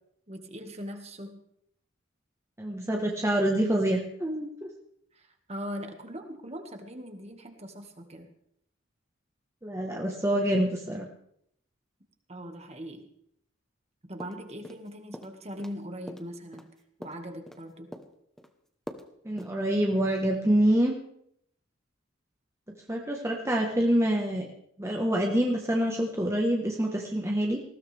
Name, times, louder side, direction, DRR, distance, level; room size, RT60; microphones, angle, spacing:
voice 1, 0.3-1.4 5.1-8.3 12.3-13.1 14.1-16.7 17.0-17.9, equal, 35° right, 5 dB, 1.9 m, -40 dB
voice 2, 2.6-4.5 9.6-11.1 19.2-21.0 22.9-24.5 24.8-27.6, right 1 dB, 15° right, 0 dB, 1.3 m, -26 dB
sound 1, 14.2-14.9 15.1-15.8 16.1-17.6 17.9-18.5 18.9-19.1 19.4-19.5, equal, ahead, 1.1 m, -44 dB
20.0 x 16.0 x 3.5 m, 0.70 s
head